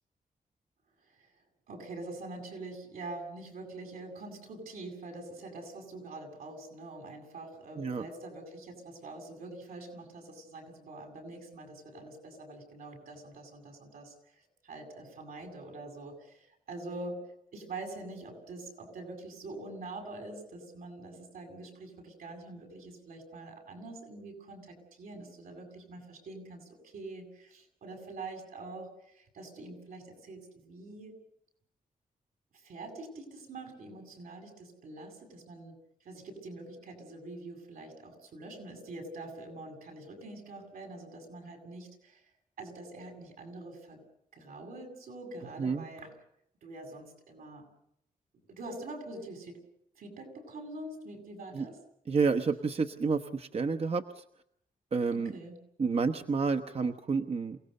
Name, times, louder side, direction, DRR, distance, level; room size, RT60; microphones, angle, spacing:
voice 1, 1.7-17.2 17.5-31.2 32.5-35.8 36.0-42.3 42.6-44.0 44.3-46.1 46.6-47.7 48.5-49.6 49.9-51.8 55.1-55.6, right 2 dB, 85° right, 3 dB, 7.5 m, -45 dB
voice 2, 52.1-54.2 54.9-55.4 55.8-57.6, right 4 dB, 45° right, 7 dB, 1.0 m, -30 dB
28.5 x 18.0 x 6.7 m, 0.73 s
cardioid pair, 100°, 15 cm